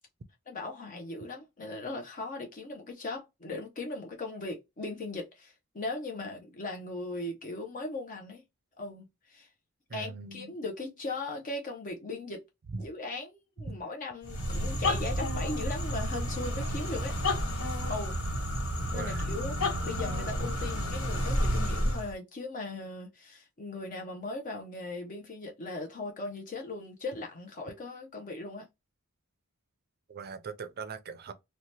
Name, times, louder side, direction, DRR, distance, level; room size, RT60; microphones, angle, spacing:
voice 1, 0.5-8.4 8.8-9.5 9.9-12.4 12.8-17.2 17.8-18.2 18.9-28.7, left 2 dB, 40° left, 0.5 m, -38 dB
voice 2, 9.9-10.5 12.7-12.9 13.7-13.8 18.9-19.3 30.1-31.3, right 4 dB, 45° right, 0.5 m, -40 dB
sound 1, 14.2-22.1, equal, 75° left, 1.6 m, -31 dB
2.7 x 2.1 x 3.1 m
head